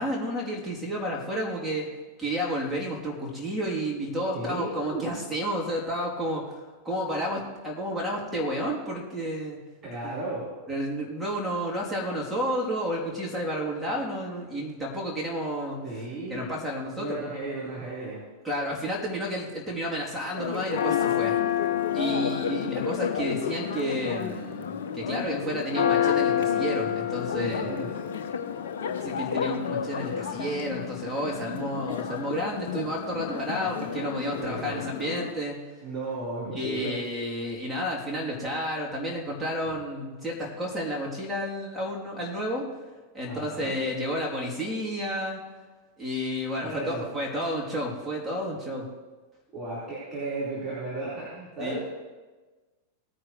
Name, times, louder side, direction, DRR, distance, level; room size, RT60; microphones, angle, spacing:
voice 1, 0.0-1.9 2.2-6.6 6.8-9.6 10.0-10.1 10.7-15.8 16.3-17.2 18.4-21.3 21.9-27.7 29.0-35.6 36.5-42.6 43.1-45.4 46.0-48.8 51.6-51.8, equal, 5° right, -5 dB, 3.1 m, -31 dB
voice 2, 4.3-5.1 9.8-10.5 15.8-16.5 17.0-18.2 27.4-27.9 33.6-33.7 34.4-34.8 35.8-37.0 43.2-43.7 46.6-47.0 49.5-51.8, right 2 dB, 25° right, -10 dB, 4.3 m, -34 dB
Church bell, 20.3-35.3, left 8 dB, 60° left, 0.8 m, -29 dB
18.5 x 9.5 x 3.2 m, 1.3 s
figure-of-eight pair, 90°, 0 cm